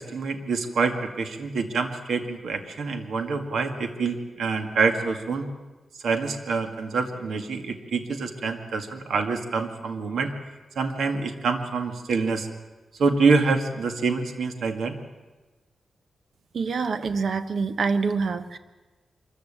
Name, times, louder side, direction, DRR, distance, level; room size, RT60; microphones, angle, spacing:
voice 1, 0.0-5.5 6.0-10.3 10.8-12.5 13.0-15.0, right 4 dB, 80° right, 6 dB, 1.9 m, -26 dB
voice 2, 16.5-18.6, right 4 dB, 60° right, 10 dB, 1.2 m, -26 dB
24.0 x 14.5 x 8.8 m, 1.2 s
wide cardioid pair, 130°, 0 cm